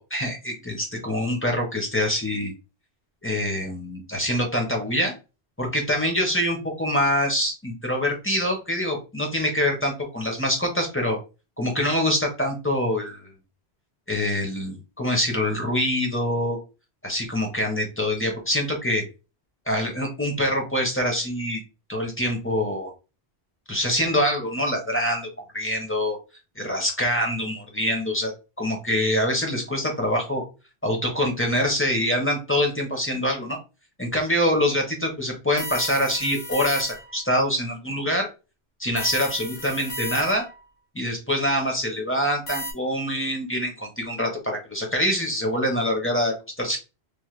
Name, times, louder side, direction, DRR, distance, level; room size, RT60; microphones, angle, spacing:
voice 1, 0.0-2.5 3.2-5.1 5.6-11.2 11.6-13.3 14.1-16.6 17.0-19.0 19.7-21.6 21.9-22.9 23.7-25.3 25.5-26.2 26.6-28.3 28.6-30.4 30.8-33.6 34.0-38.3 38.8-40.4 40.9-46.8, equal, 15° left, 2 dB, 0.6 m, -25 dB
sound 1, 35.6-37.2 39.0-40.6 42.5-42.7, left 1 dB, 55° left, 1.1 m, -34 dB
3.3 x 2.1 x 3.1 m, 0.30 s
omnidirectional pair, 1.1 m